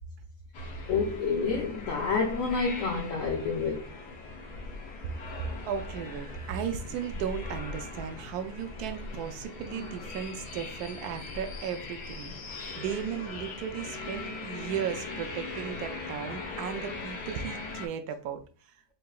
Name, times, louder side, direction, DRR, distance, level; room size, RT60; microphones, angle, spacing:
sound 1, 0.5-17.9, left 3 dB, 85° left, 1.3 m, -40 dB
voice 1, 0.9-3.8, left 5 dB, 65° left, 0.9 m, -28 dB
voice 2, 5.7-18.4, right 8 dB, 80° right, 1.1 m, -36 dB
4.7 x 2.9 x 2.2 m
omnidirectional pair, 1.6 m